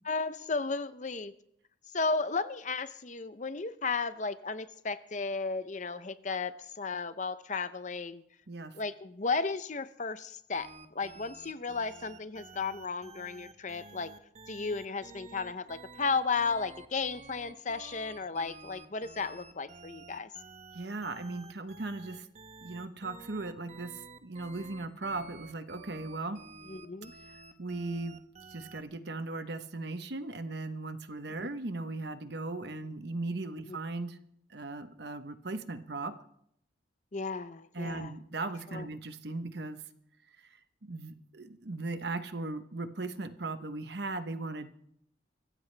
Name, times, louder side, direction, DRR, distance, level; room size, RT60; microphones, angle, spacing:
voice 1, 0.0-1.3 1.9-8.2 8.7-14.1 14.5-20.3 26.7-27.1 31.4-31.5 33.7-33.8 37.1-38.1 38.7-38.9, left 4 dB, 40° left, 13 dB, 0.7 m, -34 dB
sound 1, 10.5-28.8, right 3 dB, 35° right, 1.1 m, -51 dB
voice 2, 20.7-22.3 22.6-23.9 24.2-26.4 27.6-28.2 28.5-34.2 34.5-36.1 37.7-39.8 40.8-44.7, right 2 dB, 60° right, 10 dB, 1.0 m, -38 dB
24.0 x 15.0 x 3.4 m, 0.72 s
head